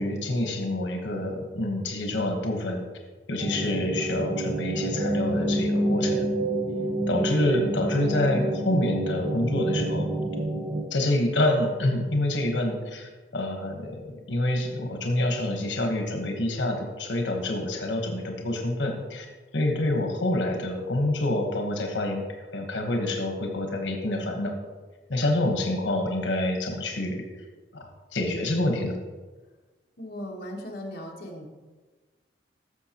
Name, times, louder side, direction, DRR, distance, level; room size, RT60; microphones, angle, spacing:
voice 1, 0.0-2.8 3.3-6.3 7.1-10.1 10.9-19.3 19.5-22.2 22.5-24.5 25.1-27.2 27.7-27.8 28.1-29.0, left 1 dB, 80° left, 3 dB, 1.2 m, -27 dB
sound 1, 3.4-10.8, right 1 dB, 25° right, 0.9 m, -28 dB
voice 2, 30.0-31.5, equal, 55° left, -1 dB, 1.2 m, -37 dB
13.5 x 6.6 x 2.9 m, 1.3 s
head